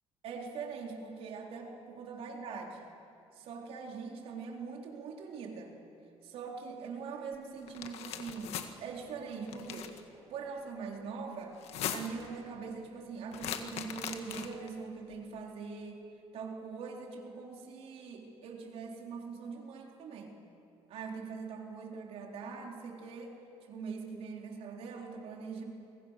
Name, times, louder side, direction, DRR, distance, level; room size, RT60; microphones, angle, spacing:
voice 1, 0.2-2.9 3.3-5.7 6.2-11.6 11.9-16.0 16.3-20.4 20.9-23.4 23.7-25.6, right 5 dB, 65° right, 1 dB, 4.0 m, -42 dB
sound 1, 7.7-8.7 9.5-10.0 11.5-12.3 13.3-14.7, left 9 dB, 70° left, 1.7 m, -39 dB
30.0 x 23.5 x 6.7 m, 2.7 s
cardioid pair, 160°, 11 cm